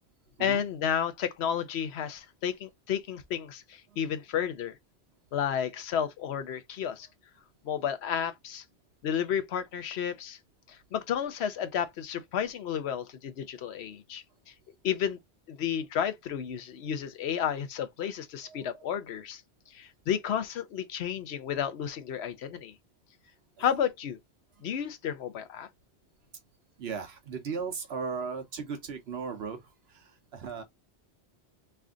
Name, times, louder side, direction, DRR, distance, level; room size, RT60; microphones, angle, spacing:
voice 1, 0.4-4.8 5.3-7.1 7.6-8.6 9.0-10.4 10.7-14.2 14.8-15.2 15.5-19.4 19.7-22.7 23.6-24.2 24.6-25.7, left 8 dB, 80° left, 1.0 m, -32 dB
voice 2, 18.5-18.8 26.8-29.6 29.9-30.6, right 5 dB, 75° right, 1.0 m, -37 dB
3.3 x 2.5 x 3.6 m
omnidirectional pair, 1.1 m